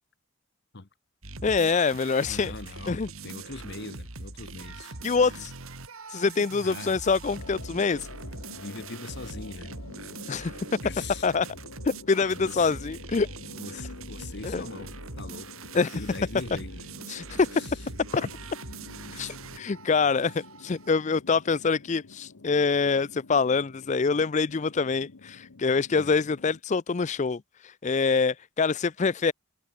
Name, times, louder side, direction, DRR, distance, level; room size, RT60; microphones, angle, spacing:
sound 1, 1.2-21.1, right 3 dB, 70° right, 2.8 m, -42 dB
voice 1, 1.4-2.5 2.9-3.1 5.0-5.5 6.1-8.1 10.3-10.7 11.2-11.5 11.8-13.3 14.4-14.7 15.7-16.0 17.1-17.5 18.1-18.3 19.1-29.3, left 4 dB, 35° left, 0.4 m, -25 dB
voice 2, 2.3-5.0 6.6-7.0 8.5-9.7 10.8-11.3 12.4-12.8 13.6-16.9 17.5-17.8 25.9-26.1, left 3 dB, 50° left, 1.1 m, -41 dB
sound 2, 7.3-26.6, left 3 dB, 75° left, 0.9 m, -48 dB
head